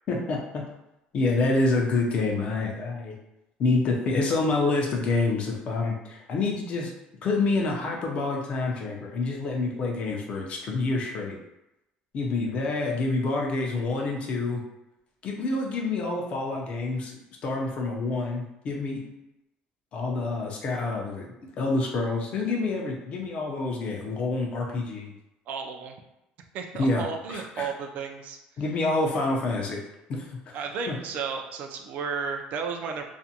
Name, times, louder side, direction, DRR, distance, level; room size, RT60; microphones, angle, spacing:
voice 1, 0.1-0.6 1.1-3.1 3.6-6.9 7.2-11.4 12.1-14.6 15.2-17.1 17.4-19.0 19.9-25.1 26.8-27.0 27.3-27.7 28.6-29.8 30.1-30.5 30.9-31.0, left 3 dB, 40° left, 0 dB, 0.5 m, -27 dB
voice 2, 25.5-25.9 26.5-28.4 30.5-33.0, right 5 dB, 55° right, 4 dB, 0.3 m, -33 dB
2.5 x 2.1 x 2.7 m, 0.90 s
cardioid pair, 145°, 3 cm